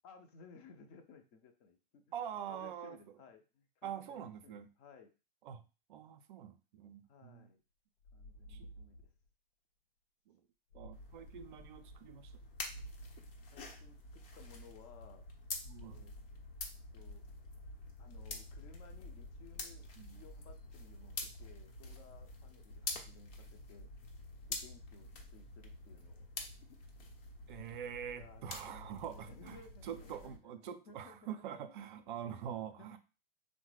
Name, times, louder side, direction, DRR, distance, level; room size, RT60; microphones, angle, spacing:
voice 1, 0.0-2.0 2.5-5.1 7.1-7.6 8.1-9.1 13.5-15.3 15.8-16.1 16.9-17.2 18.0-23.9 24.5-26.2 28.1-31.8 32.2-33.0, left 5 dB, 35° left, 6 dB, 0.6 m, -59 dB
voice 2, 2.1-3.0 3.8-4.7 5.4-5.6 5.9-7.5 8.5-8.7 10.3-10.4 10.7-12.3 15.7-16.1 20.0-20.2 27.5-33.0, right 9 dB, 55° right, 9 dB, 0.5 m, -45 dB
sound 1, 8.0-9.3 10.7-11.3 12.6-13.3 15.2-21.9 23.3-24.6, equal, 85° left, 0.6 m, -55 dB
sound 2, 10.9-30.4, left 3 dB, 60° left, 0.9 m, -48 dB
3.5 x 2.1 x 3.1 m, 0.31 s
figure-of-eight pair, 105°, 31 cm